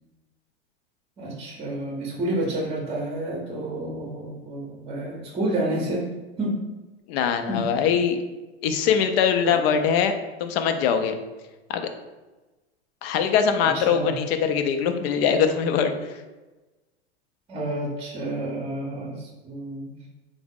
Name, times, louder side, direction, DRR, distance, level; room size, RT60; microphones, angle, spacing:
voice 1, 1.2-6.1 6.4-6.6 7.5-7.7 9.4-9.6 13.6-14.2 17.5-20.1, right 1 dB, 20° right, -1 dB, 0.7 m, -29 dB
voice 2, 7.1-8.2 8.6-10.1 10.4-11.1 11.7-11.9 13.0-15.9, left 7 dB, 65° left, 7 dB, 0.5 m, -22 dB
3.6 x 2.0 x 3.5 m, 1.1 s
supercardioid pair, 120°, 33 cm